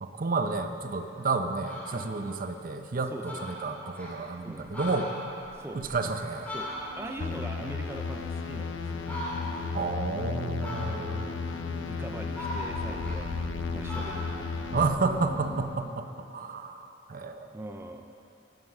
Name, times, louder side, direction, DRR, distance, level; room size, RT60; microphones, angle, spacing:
voice 1, 0.0-5.1 5.7-6.5 9.7-11.3 14.7-16.1 16.3-17.5, right 3 dB, 50° right, 7 dB, 0.7 m, -31 dB
Fowl, 1.0-1.1 1.5-2.1 2.6-2.7 2.9-3.0 3.2-4.1 4.6-7.2 7.6-8.6 9.0-9.7 10.6-11.3 11.8-13.6 13.9-15.5, equal, 10° left, 3.2 m, -40 dB
voice 2, 3.1-3.5 4.4-4.7 5.5-5.8 6.5-9.2 11.8-13.3 13.7-14.6 17.5-18.1, right 1 dB, 15° right, 4 dB, 0.4 m, -42 dB
sound 1, 6.4-15.6, left 1 dB, 30° right, 2.8 m, -42 dB
sound 2, 7.2-14.9, left 5 dB, 75° left, 0.7 m, -34 dB
12.0 x 9.6 x 6.0 m, 2.8 s
head